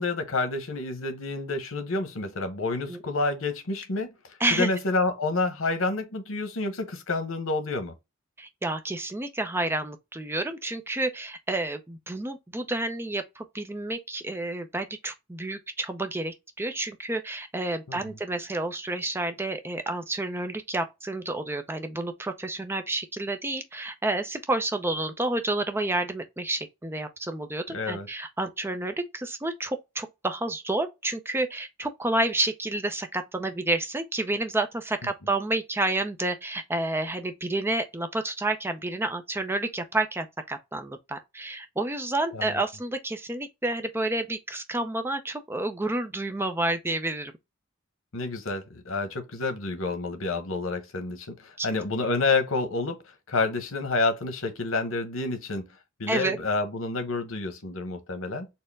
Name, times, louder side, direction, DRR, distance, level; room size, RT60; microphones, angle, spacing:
voice 1, 0.0-4.1 4.5-7.9 17.9-18.2 27.7-28.1 42.3-42.6 48.1-53.0 53.3-55.7 56.0-58.5, left 3 dB, 80° left, 1.0 m, -29 dB
voice 2, 4.4-4.7 8.4-47.3 51.6-51.7 56.1-56.4, right 2 dB, 10° right, 0.5 m, -30 dB
4.3 x 2.1 x 3.4 m
head